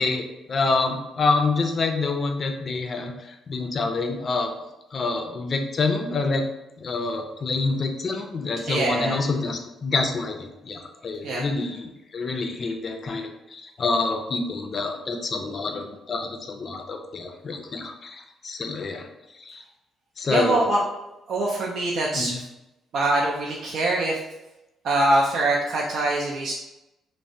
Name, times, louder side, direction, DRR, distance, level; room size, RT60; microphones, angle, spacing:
voice 1, 0.0-4.5 4.9-6.4 6.8-19.1 19.4-19.6 20.2-20.7 22.1-22.4, left 3 dB, 45° left, 4 dB, 0.4 m, -27 dB
voice 2, 8.7-9.2 11.2-11.4 20.3-20.8 21.3-22.4 22.9-24.2 24.8-26.5, right 2 dB, 70° right, -3 dB, 0.4 m, -23 dB
3.2 x 2.1 x 2.6 m, 0.95 s
cardioid pair, 90°, 0 cm